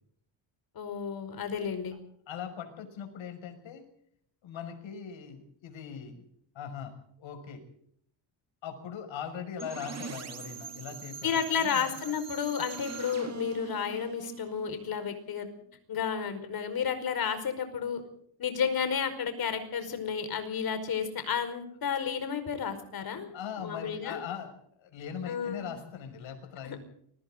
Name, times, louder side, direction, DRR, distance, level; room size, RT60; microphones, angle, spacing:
voice 1, 0.7-1.9 11.2-15.5 15.9-18.0 18.4-23.3 23.6-24.2 25.2-25.7 26.6-26.8, left 7 dB, 50° left, 9 dB, 5.1 m, -32 dB
voice 2, 2.3-3.8 4.4-6.2 6.5-7.6 8.6-12.0 23.3-26.8, left 7 dB, 80° left, 6 dB, 6.2 m, -40 dB
sound 1, 9.6-15.4, right 5 dB, 35° right, 2.2 m, -43 dB
29.0 x 23.0 x 3.9 m, 0.67 s
cardioid pair, 155°, 46 cm